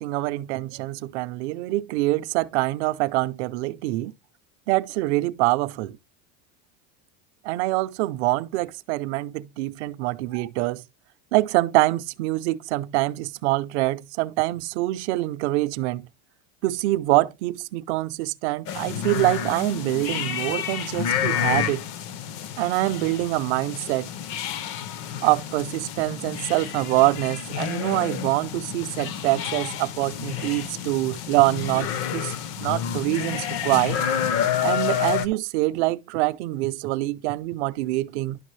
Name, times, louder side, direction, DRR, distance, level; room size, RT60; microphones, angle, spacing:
voice 1, 0.0-4.1 4.7-6.0 7.4-10.8 11.3-16.1 16.6-21.9 22.6-24.1 25.2-34.0 34.6-38.4, right 18 dB, 55° right, 0.6 m, -25 dB
sound 1, 18.7-35.3, left 9 dB, 40° left, 0.5 m, -29 dB
11.0 x 6.0 x 3.1 m
cardioid pair, 180°, 41 cm